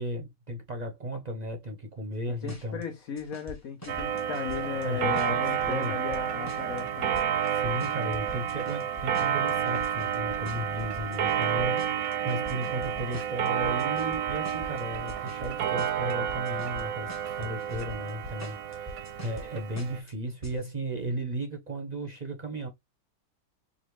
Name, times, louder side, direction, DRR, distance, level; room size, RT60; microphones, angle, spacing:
voice 1, 0.0-2.8 4.8-6.0 7.5-22.7, right 1 dB, 40° right, 0.7 m, -35 dB
voice 2, 2.3-7.2, left 6 dB, 75° left, 1.3 m, -36 dB
sound 1, 2.5-2.8 3.2-4.8 5.2-6.8 7.1-15.5 15.8-16.8 17.1-19.5 19.8-20.1 20.4-20.6, left 1 dB, 15° left, 1.0 m, -43 dB
Clock, 3.9-20.0, right 9 dB, 90° right, 1.1 m, -30 dB
4.8 x 2.6 x 3.0 m
omnidirectional pair, 1.5 m